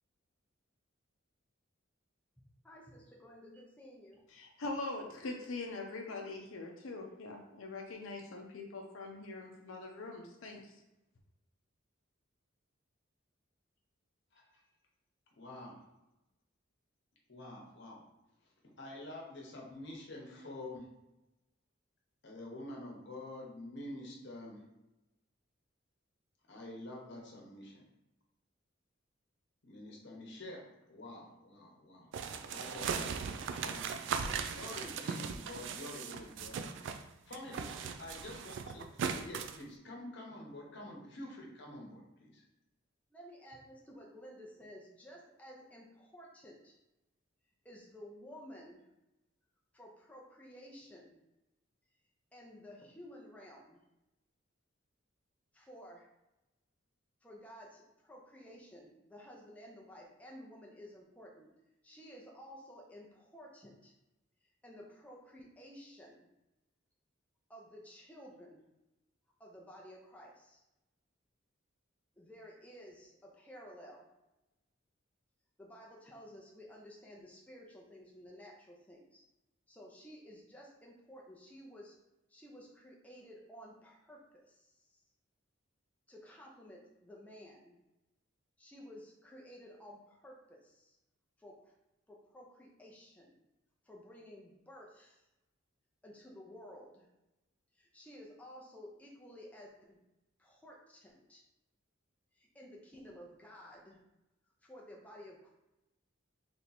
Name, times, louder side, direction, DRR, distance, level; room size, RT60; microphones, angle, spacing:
voice 1, 2.6-4.3 37.4-37.9 43.1-46.8 47.6-48.9 49.7-51.2 52.3-53.8 55.5-56.1 57.2-61.5 61.8-63.9 64.4-66.3 67.5-68.6 69.4-70.6 72.2-74.1 75.6-79.2 79.7-81.9 82.3-85.0 86.1-87.8 88.6-91.0 91.4-91.7 92.1-93.4 93.8-95.2 96.0-97.1 97.7-100.0 100.4-101.4 102.3-104.0 104.6-105.5, equal, 5° left, -3 dB, 0.5 m, -53 dB
voice 2, 4.3-10.7, left 2 dB, 80° left, 1 dB, 0.6 m, -43 dB
voice 3, 15.4-15.8 17.3-18.0 18.8-20.9 22.2-24.6 26.5-27.8 29.6-33.8 34.5-36.7 37.3-37.7 38.0-38.9 39.2-42.4, left 1 dB, 60° left, -2 dB, 1.0 m, -47 dB
sound 1, 32.1-37.0 37.3-39.6, right 6 dB, 65° right, 0.3 m, -38 dB
3.3 x 2.9 x 4.0 m, 0.95 s
head